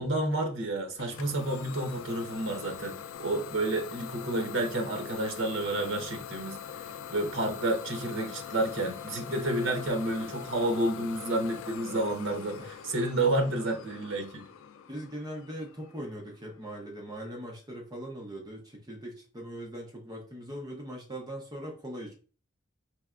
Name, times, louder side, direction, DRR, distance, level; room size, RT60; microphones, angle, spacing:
voice 1, 0.0-6.6 7.1-14.5, right 1 dB, 70° right, 0.9 m, -30 dB
Idling / Domestic sounds home sounds, 1.0-16.5, left 8 dB, 80° left, 0.3 m, -43 dB
voice 2, 14.9-22.1, right 1 dB, 20° right, 0.7 m, -40 dB
4.8 x 3.2 x 2.4 m
head